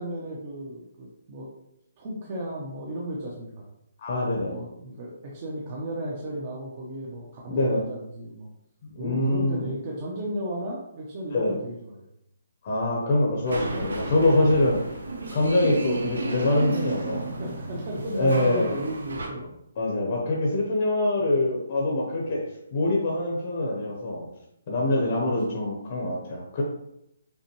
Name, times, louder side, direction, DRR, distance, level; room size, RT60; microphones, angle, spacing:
voice 1, 0.0-1.5 2.0-3.7 4.4-8.5 9.0-12.1 14.4-14.6 17.4-19.5 19.8-20.0 22.3-22.4 24.7-25.7, equal, 30° right, -3 dB, 0.6 m, -35 dB
voice 2, 4.0-4.6 7.5-7.8 8.8-9.7 11.3-11.6 12.6-14.8 15.3-17.3 18.2-18.8 19.8-22.4 22.7-24.2 24.7-26.6, left 1 dB, 35° left, -2 dB, 0.7 m, -24 dB
sound 1, 13.5-19.3, right 3 dB, 85° right, 1.0 m, -33 dB
5.4 x 2.2 x 3.0 m, 0.79 s
hypercardioid pair, 170°, 0 cm